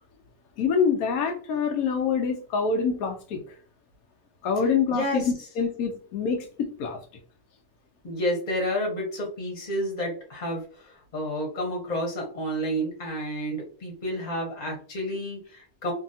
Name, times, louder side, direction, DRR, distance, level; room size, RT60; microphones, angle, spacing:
voice 1, 0.6-3.6 4.4-7.0, left 6 dB, 85° left, 4 dB, 1.1 m, -26 dB
voice 2, 4.9-5.2 8.0-10.6 11.1-15.9, equal, 35° left, -1 dB, 1.0 m, -30 dB
2.7 x 2.6 x 2.7 m, 0.41 s
omnidirectional pair, 1.5 m